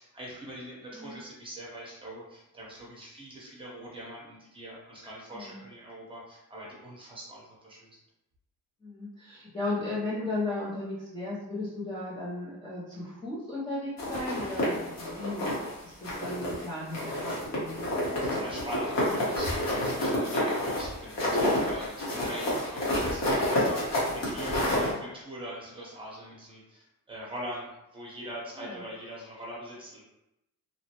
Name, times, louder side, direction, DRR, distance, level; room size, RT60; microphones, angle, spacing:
voice 1, 0.0-7.9 18.2-30.0, right 1 dB, 15° right, -5 dB, 0.8 m, -42 dB
voice 2, 8.8-15.5 15.8-17.9 24.6-24.9 28.6-28.8, left 2 dB, 15° left, -9 dB, 0.5 m, -36 dB
sound 1, 14.0-15.7 16.0-16.7 16.9-24.9, left 1 dB, 50° left, 1.0 m, -29 dB
2.9 x 2.0 x 2.8 m, 0.91 s
cardioid pair, 155°, 34 cm